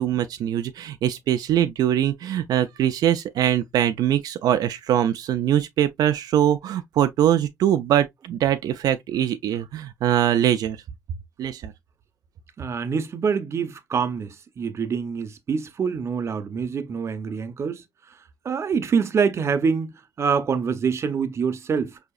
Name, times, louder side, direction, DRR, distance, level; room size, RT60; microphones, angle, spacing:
voice 1, 0.0-10.8 11.4-11.7, right 11 dB, 90° right, 0.3 m, -22 dB
voice 2, 12.6-17.8 18.4-22.0, right 6 dB, 45° right, 0.6 m, -25 dB
4.9 x 2.7 x 2.3 m
cardioid pair, 135°, 6 cm